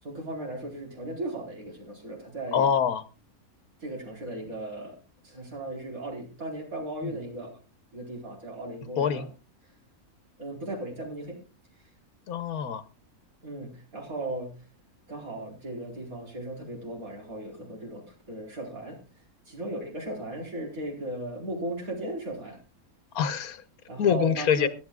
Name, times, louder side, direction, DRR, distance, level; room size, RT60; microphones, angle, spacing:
voice 1, 0.0-2.7 3.8-5.0 5.2-7.5 7.9-9.3 10.4-11.4 13.4-14.6 15.1-19.0 19.5-22.6 23.9-24.7, right 1 dB, 70° right, -1 dB, 5.0 m, -36 dB
voice 2, 2.5-3.0 9.0-9.3 12.3-12.8 23.1-23.6 24.0-24.7, left 7 dB, 90° left, 12 dB, 1.4 m, -24 dB
22.0 x 11.0 x 2.4 m, 0.32 s
omnidirectional pair, 1.5 m